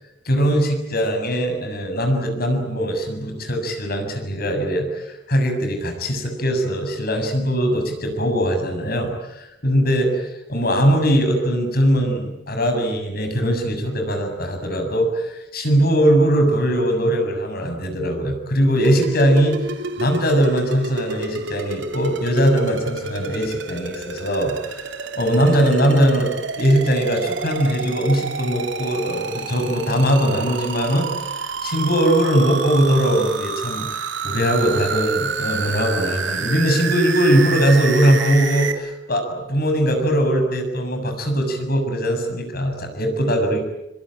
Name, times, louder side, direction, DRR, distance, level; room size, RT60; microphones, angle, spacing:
voice 1, 0.2-19.6 20.0-43.6, equal, 55° left, 5 dB, 7.1 m, -20 dB
sound 1, 18.8-38.7, right 4 dB, 85° right, 3.0 m, -29 dB
25.5 x 25.5 x 9.0 m, 0.91 s
head